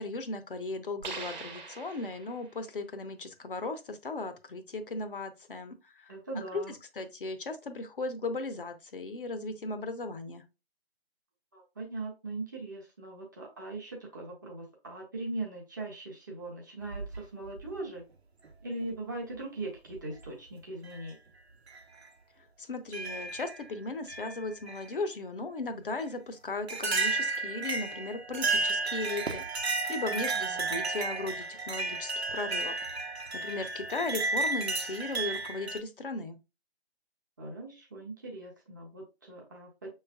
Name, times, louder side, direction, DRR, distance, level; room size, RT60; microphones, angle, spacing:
voice 1, 0.0-6.1 6.5-10.4 22.6-32.7 33.3-36.4, left 3 dB, 55° left, 0.7 m, -37 dB
sound 1, 1.0-2.6, right 4 dB, 45° right, 1.1 m, -42 dB
voice 2, 6.1-6.7 11.5-18.0 18.6-21.2 30.1-30.6 37.4-39.9, right 2 dB, 20° right, 0.7 m, -40 dB
sound 2, 16.8-17.7 18.8-18.9 19.9-20.2 20.9-21.0 21.7-21.8 22.9-23.6 24.1-24.9 26.0-26.1 26.7-35.8, right 3 dB, 75° right, 0.8 m, -33 dB
5.8 x 3.2 x 2.2 m
figure-of-eight pair, 145°, 32 cm